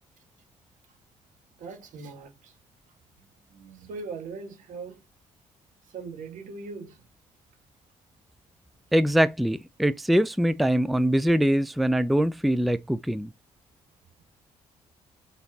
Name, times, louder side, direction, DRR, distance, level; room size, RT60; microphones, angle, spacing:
voice 1, 1.6-2.5 3.2-5.0 5.9-7.0, right 4 dB, 75° right, 1.4 m, -40 dB
voice 2, 8.9-13.3, equal, ahead, 0.4 m, -23 dB
4.9 x 4.0 x 2.7 m
supercardioid pair, 65°, 13 cm